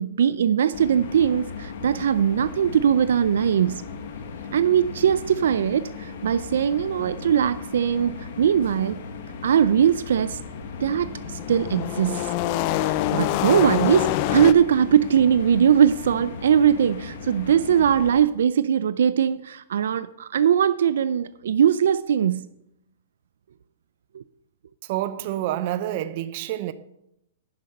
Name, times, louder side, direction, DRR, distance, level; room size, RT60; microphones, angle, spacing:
voice 1, 0.0-3.8 4.5-9.0 9.4-10.4 10.8-12.3 13.1-22.5 24.1-24.2, right 8 dB, 80° right, 0.4 m, -20 dB
sound 1, 0.7-18.2, left 5 dB, 60° left, 1.5 m, -37 dB
sound 2, 10.7-14.5, left 14 dB, 35° left, 0.4 m, -25 dB
voice 2, 24.8-26.7, right 13 dB, 45° right, 0.7 m, -28 dB
11.0 x 6.4 x 5.3 m
hypercardioid pair, 160°, 0 cm